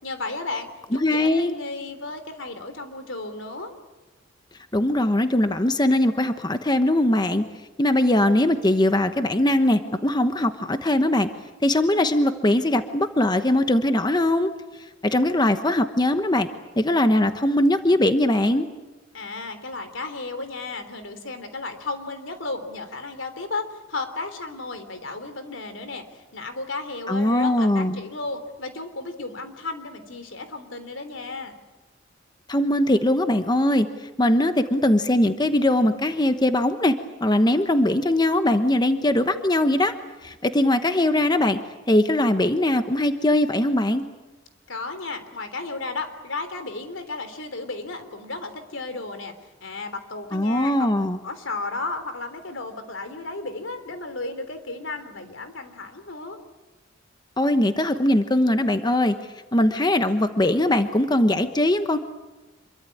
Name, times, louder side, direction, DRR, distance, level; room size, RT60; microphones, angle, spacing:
voice 1, 0.0-3.7 19.1-31.5 44.7-49.3 49.6-50.9 51.2-56.4, left 3 dB, 80° left, 9 dB, 3.4 m, -34 dB
voice 2, 1.0-1.5 4.7-7.5 7.8-11.3 11.6-14.5 15.0-16.5 16.8-18.7 27.1-28.0 32.5-37.0 37.2-39.9 40.2-41.6 41.9-44.0 50.3-51.2 57.4-59.2 59.5-62.0, left 1 dB, 20° left, 8 dB, 1.1 m, -21 dB
26.5 x 23.5 x 8.6 m, 1.1 s
head